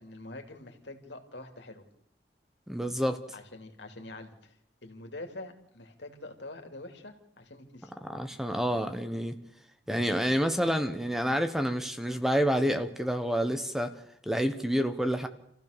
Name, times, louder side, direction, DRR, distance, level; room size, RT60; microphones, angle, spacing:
voice 1, 0.0-1.9 3.3-7.9, left 2 dB, 75° left, 5 dB, 2.9 m, -45 dB
voice 2, 2.7-3.2 8.1-9.3 9.9-14.0 14.3-15.3, equal, ahead, 8 dB, 1.0 m, -28 dB
28.0 x 15.5 x 6.8 m, 0.72 s
head